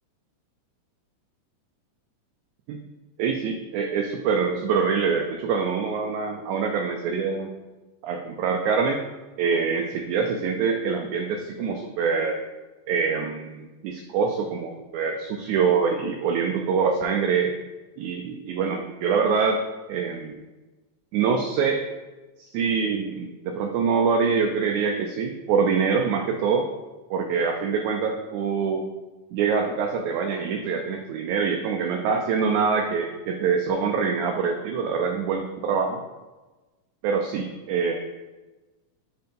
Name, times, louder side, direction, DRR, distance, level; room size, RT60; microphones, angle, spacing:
voice 1, 3.2-7.5 8.0-9.0 9.4-12.4 12.9-17.5 18.0-19.6 19.9-20.3 21.1-21.8 22.4-26.7 27.1-28.9 29.3-36.0 37.0-38.0, right 5 dB, 80° right, 2 dB, 1.9 m, -25 dB
5.2 x 4.5 x 5.2 m, 1.1 s
omnidirectional pair, 3.6 m